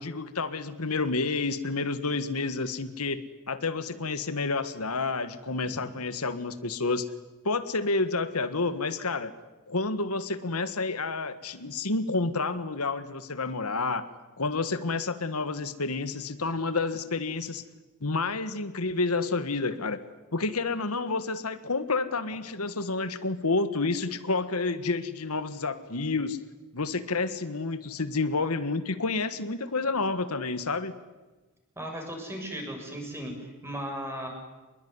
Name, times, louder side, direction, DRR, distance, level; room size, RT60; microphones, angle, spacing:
voice 1, 0.0-7.0 7.4-9.3 9.7-14.1 14.4-17.6 18.0-20.0 20.3-26.4 26.7-30.9, left 3 dB, 85° left, 11 dB, 1.7 m, -29 dB
voice 2, 31.8-34.3, equal, 10° right, 2 dB, 7.4 m, -36 dB
26.5 x 21.5 x 9.7 m, 1.2 s
head